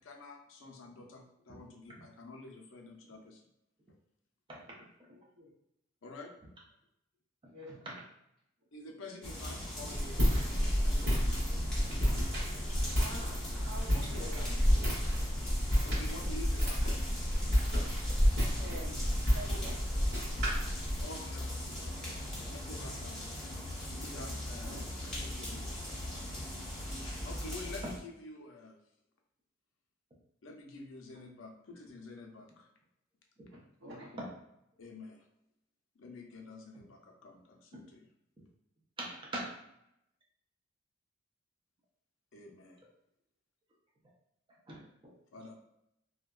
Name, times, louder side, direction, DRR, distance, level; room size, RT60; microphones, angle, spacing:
voice 1, 0.0-3.4 6.0-6.3 8.7-10.2 10.5-11.4 11.9-12.0 15.8-16.9 19.3-19.4 21.0-23.3 24.0-25.7 27.2-28.8 30.4-32.7 34.8-35.3 35.9-38.1 42.3-42.8 45.3-45.5, left 2 dB, 75° left, 2 dB, 0.5 m, -49 dB
voice 2, 5.1-5.5 7.4-7.9 12.9-13.3 13.6-15.1 18.6-19.1 19.3-19.8 24.6-24.8 33.5-34.2, right 1 dB, 75° right, -11 dB, 0.9 m, -47 dB
voice 3, 7.7-8.0 11.0-11.1 11.8-12.0 17.4-17.6 27.8-27.9 33.4-33.5 34.2-34.3 36.7-36.8 37.7-37.9 38.4-38.5 39.0-39.6 44.7-45.1, right 1 dB, 25° right, -3 dB, 0.5 m, -43 dB
sound 1, 9.2-28.0, left 1 dB, 5° left, 0.8 m, -41 dB
Walk footsteps, 9.9-21.0, equal, 60° right, 1.4 m, -30 dB
2.7 x 2.2 x 2.3 m, 0.80 s
head